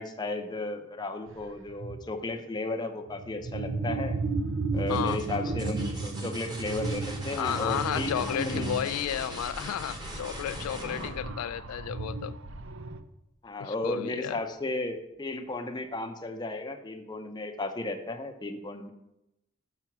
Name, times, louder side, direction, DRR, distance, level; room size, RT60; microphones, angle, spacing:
voice 1, 0.0-4.2 4.7-8.7 13.4-18.9, left 2 dB, 20° left, 0.6 m, -34 dB
sound 1, 1.3-1.4 1.7-2.1 3.1-13.0, right 3 dB, 60° right, 0.5 m, -34 dB
sound 2, 4.7-12.3 14.1-14.7, right 1 dB, 20° right, 1.0 m, -42 dB
voice 2, 4.9-5.3 7.3-12.4 13.6-14.4, left 10 dB, 90° left, 0.3 m, -32 dB
6.6 x 5.9 x 5.9 m
head